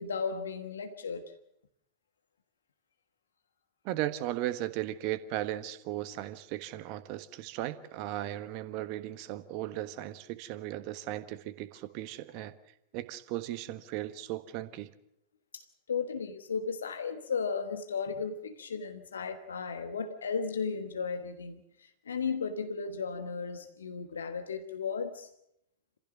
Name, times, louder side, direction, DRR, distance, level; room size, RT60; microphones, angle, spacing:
voice 1, 0.0-1.3 15.5-25.3, left 5 dB, 70° left, 1.3 m, -35 dB
voice 2, 3.8-12.5 12.9-14.9, right 14 dB, 45° right, 1.3 m, -36 dB
27.0 x 15.5 x 7.4 m
figure-of-eight pair, 90°, 0 cm